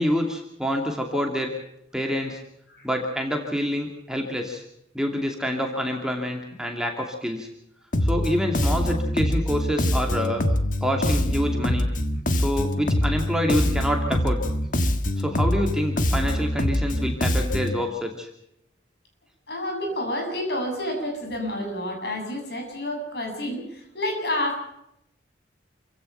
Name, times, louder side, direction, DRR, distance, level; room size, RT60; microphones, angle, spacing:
voice 1, 0.0-1.5 1.9-2.4 2.8-4.6 4.9-7.5 8.0-10.4 10.8-11.9 12.3-14.4 15.2-18.3, equal, 5° right, 2 dB, 2.7 m, -27 dB
Bass guitar, 7.9-17.8, left 1 dB, 45° left, 1.5 m, -24 dB
voice 2, 19.5-24.6, left 1 dB, 60° left, 3 dB, 7.4 m, -29 dB
28.0 x 16.0 x 5.7 m, 0.77 s
head